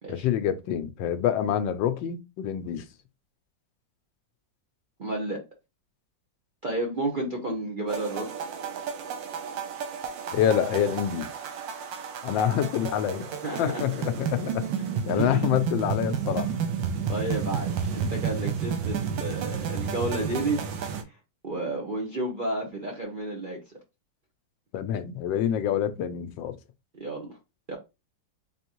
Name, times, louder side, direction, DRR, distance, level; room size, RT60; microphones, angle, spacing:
voice 1, 0.1-2.9 10.3-11.3 12.2-13.3 13.6-14.7 15.1-16.5 24.7-26.6, left 9 dB, 80° left, 1.3 m, -26 dB
voice 2, 5.0-5.4 6.6-8.3 13.4-13.8 15.1-15.5 17.1-20.6 21.4-23.6 26.9-27.4 27.7-27.8, right 2 dB, 45° right, 0.6 m, -31 dB
sound 1, 7.9-21.0, right 7 dB, 80° right, 1.4 m, -31 dB
3.9 x 3.5 x 2.9 m
omnidirectional pair, 2.0 m